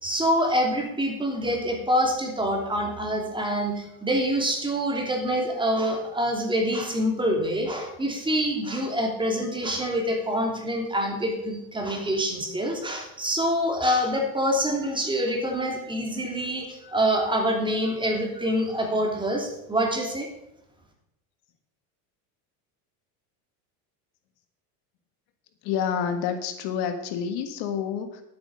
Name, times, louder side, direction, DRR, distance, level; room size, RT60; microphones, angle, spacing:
voice 1, 0.0-20.3, equal, 10° right, 1 dB, 2.9 m, -26 dB
voice 2, 25.6-28.2, left 7 dB, 65° left, 8 dB, 1.6 m, -28 dB
10.5 x 8.6 x 6.2 m, 0.83 s
supercardioid pair, 120°, 43 cm